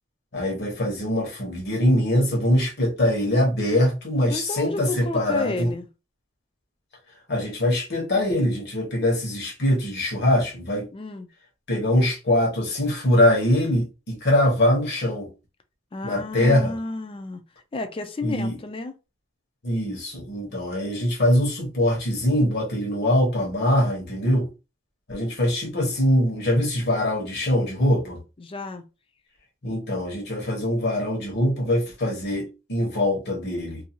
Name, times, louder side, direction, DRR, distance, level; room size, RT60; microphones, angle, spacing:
voice 1, 0.3-5.7 7.3-10.9 11.7-15.3 16.0-16.7 18.2-18.6 19.6-24.5 25.1-28.2 29.6-33.8, left 1 dB, 55° left, 1.1 m, -23 dB
voice 2, 4.3-5.9 10.9-11.3 15.9-17.4 17.7-18.9 28.4-28.9, left 2 dB, 25° left, 0.4 m, -31 dB
2.6 x 2.3 x 2.9 m
head